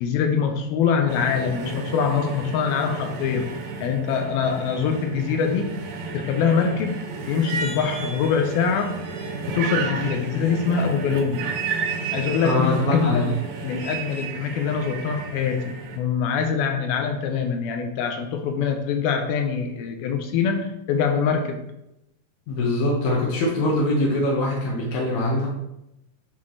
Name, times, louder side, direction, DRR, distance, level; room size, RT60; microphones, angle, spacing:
voice 1, 0.0-5.8 6.1-9.0 9.5-11.5 12.1-21.6, left 6 dB, 80° left, 5 dB, 2.3 m, -24 dB
sound 1, 1.1-16.0, right 4 dB, 70° right, 2.5 m, -32 dB
voice 2, 12.4-13.3 22.5-25.5, left 1 dB, 65° left, -4 dB, 1.9 m, -23 dB
9.7 x 4.3 x 3.2 m, 0.86 s
omnidirectional pair, 4.7 m